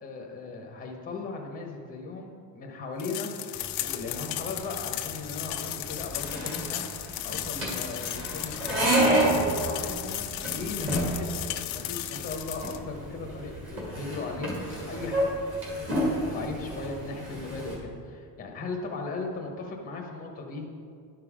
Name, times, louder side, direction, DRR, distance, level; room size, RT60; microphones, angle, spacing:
voice 1, 0.0-3.3 3.8-6.9 7.2-15.4 15.7-20.7, left 3 dB, 20° left, 1 dB, 1.0 m, -37 dB
sound 1, 3.0-12.8, left 14 dB, 70° left, 0.6 m, -35 dB
sound 2, 3.5-17.8, right 1 dB, 30° right, 2.3 m, -30 dB
11.5 x 5.5 x 4.9 m, 2.3 s
cardioid pair, 170°, 43 cm